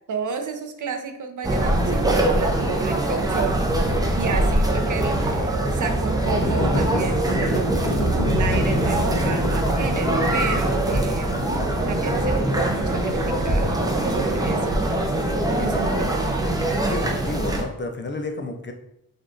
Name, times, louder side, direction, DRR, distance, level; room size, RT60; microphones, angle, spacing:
voice 1, 0.1-3.6 4.1-11.3 11.9-15.1 15.6-16.1, right 5 dB, 60° right, 6 dB, 0.6 m, -31 dB
sound 1, 1.4-17.6, right 1 dB, 10° right, 0.6 m, -23 dB
sound 2, 6.3-14.7, equal, 50° left, 1.7 m, -29 dB
sound 3, 8.2-12.5, left 7 dB, 85° left, 0.5 m, -34 dB
voice 2, 15.5-15.9 16.8-18.7, left 3 dB, 30° left, 5 dB, 0.5 m, -31 dB
5.1 x 2.4 x 3.8 m, 0.78 s
wide cardioid pair, 105°, 35 cm